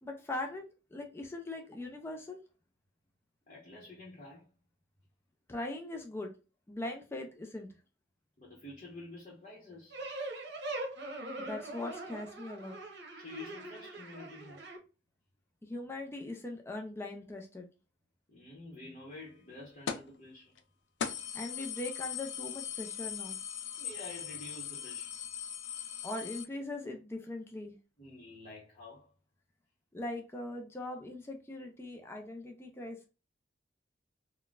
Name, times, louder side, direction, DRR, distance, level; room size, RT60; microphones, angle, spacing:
voice 1, 0.0-2.4 5.5-6.3 6.7-7.8 11.4-12.8 15.6-17.7 21.3-23.4 26.0-27.7 29.9-33.1, left 2 dB, 15° left, 0.4 m, -40 dB
voice 2, 3.5-4.5 8.4-10.0 13.1-14.6 18.3-20.6 23.8-25.1 28.0-29.1, left 2 dB, 40° left, 0.9 m, -49 dB
sound 1, 9.9-14.8, right 2 dB, 65° right, 0.9 m, -42 dB
sound 2, 19.9-20.2 20.6-20.7 21.0-26.4, left 8 dB, 80° left, 0.4 m, -39 dB
4.0 x 2.1 x 2.3 m
head